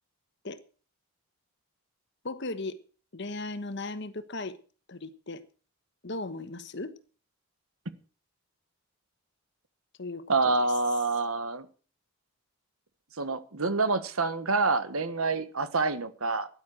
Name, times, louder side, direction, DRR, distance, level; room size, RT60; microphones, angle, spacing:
voice 1, 2.2-2.8 3.1-4.6 4.9-5.4 6.0-6.9 10.0-10.5, left 2 dB, 50° left, 1.2 m, -37 dB
voice 2, 10.3-11.7 13.2-16.5, right 3 dB, 75° right, 1.4 m, -27 dB
13.5 x 10.5 x 6.2 m
head